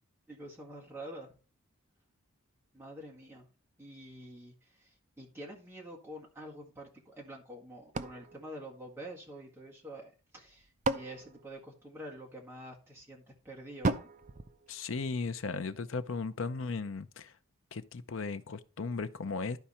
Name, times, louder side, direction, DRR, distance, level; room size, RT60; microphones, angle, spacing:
voice 1, 0.3-1.3 2.7-3.5 3.8-14.1, right 1 dB, 10° right, 1.8 m, -47 dB
sound 1, 7.9-9.5 10.3-12.3 13.8-15.4, right 2 dB, 35° right, 0.5 m, -37 dB
voice 2, 14.7-17.4 17.7-19.6, left 4 dB, 60° left, 0.6 m, -36 dB
12.0 x 4.6 x 4.3 m
head